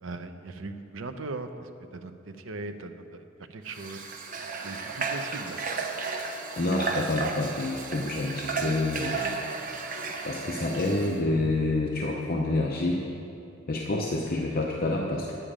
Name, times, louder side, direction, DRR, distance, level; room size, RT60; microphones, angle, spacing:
voice 1, 0.0-3.2 3.5-4.0 4.6-5.6, right 3 dB, 80° right, 8 dB, 0.6 m, -39 dB
Water / Water tap faucet, 3.7-11.2, right 4 dB, 45° right, 0.8 m, -34 dB
voice 2, 6.6-9.3 10.2-13.0 13.7-15.3, left 2 dB, 50° left, -1 dB, 0.7 m, -28 dB
10.0 x 9.0 x 5.0 m, 2.7 s
head